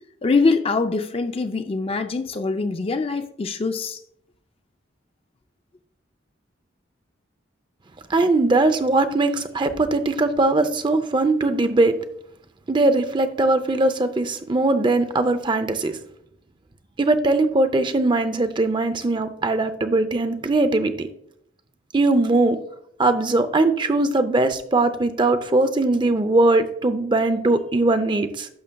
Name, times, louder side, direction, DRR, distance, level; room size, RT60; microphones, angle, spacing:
voice 1, 0.2-4.0, left 4 dB, 30° left, 0.4 m, -23 dB
voice 2, 8.1-12.0 12.7-15.9 17.0-21.1 21.9-22.6 23.0-28.5, right 2 dB, 25° right, 0.5 m, -20 dB
11.0 x 6.3 x 2.2 m
head